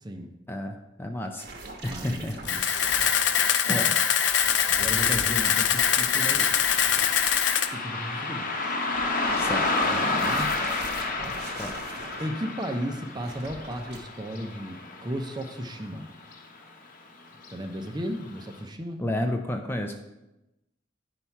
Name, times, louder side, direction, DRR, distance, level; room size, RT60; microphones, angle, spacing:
voice 1, 0.5-1.5 1.8-2.4 3.6-3.9 9.4-10.2 11.6-11.8 19.0-20.0, left 1 dB, 10° left, 4 dB, 0.5 m, -31 dB
sound 1, 1.4-3.6 4.2-7.6 8.9-12.3 13.2-14.0, right 2 dB, 60° right, 1.2 m, -42 dB
voice 2, 1.9-2.7 3.7-3.9 4.7-6.5 7.7-8.8 10.1-10.6 11.2-11.4 12.2-16.1 17.5-19.0, equal, 25° right, 6 dB, 0.7 m, -34 dB
Camera, 2.4-7.7, left 8 dB, 75° left, 0.6 m, -23 dB
Car passing by, 5.2-16.0 16.3-16.4 17.3-17.5 18.0-18.1 18.6-18.7, left 3 dB, 45° left, 1.0 m, -31 dB
9.7 x 5.7 x 4.6 m, 0.95 s
head